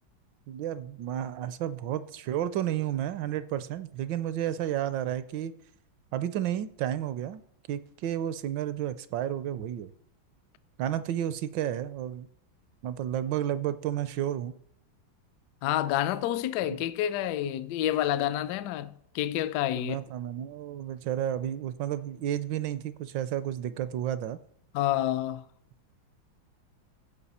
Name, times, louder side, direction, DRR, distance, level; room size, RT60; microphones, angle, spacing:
voice 1, 0.5-5.5 6.1-7.4 7.7-9.9 10.8-12.3 12.8-14.5 19.8-24.4, right 11 dB, 75° right, 1.1 m, -31 dB
voice 2, 15.6-20.0 24.7-25.4, left 12 dB, 75° left, 1.0 m, -28 dB
15.5 x 5.3 x 4.2 m
omnidirectional pair, 2.2 m